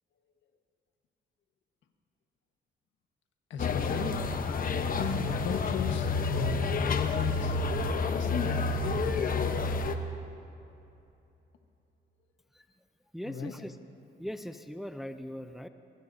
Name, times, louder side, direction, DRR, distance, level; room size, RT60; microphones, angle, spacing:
voice 1, 3.5-4.2 5.0-7.6 8.1-9.4 13.2-13.5, left 6 dB, 70° left, 5 dB, 1.4 m, -36 dB
sound 1, 3.6-9.9, left 4 dB, 45° left, 1.0 m, -29 dB
voice 2, 13.1-13.7 14.2-15.7, equal, ahead, 9 dB, 0.6 m, -39 dB
23.0 x 21.5 x 2.8 m, 2.8 s
cardioid pair, 90°, 20 cm